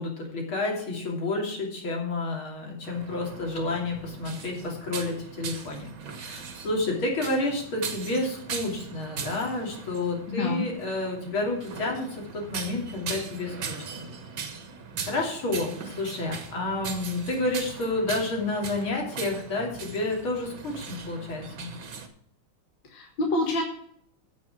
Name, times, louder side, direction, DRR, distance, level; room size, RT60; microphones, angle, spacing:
voice 1, 0.0-5.9 6.2-14.1 15.1-21.7, left 2 dB, 80° left, 0 dB, 3.9 m, -30 dB
sound 1, 2.8-22.1, right 5 dB, 70° right, 2.2 m, -39 dB
voice 2, 10.3-10.6 22.9-23.6, left 2 dB, 65° left, 1 dB, 2.3 m, -27 dB
15.5 x 5.9 x 6.2 m, 0.67 s
omnidirectional pair, 2.2 m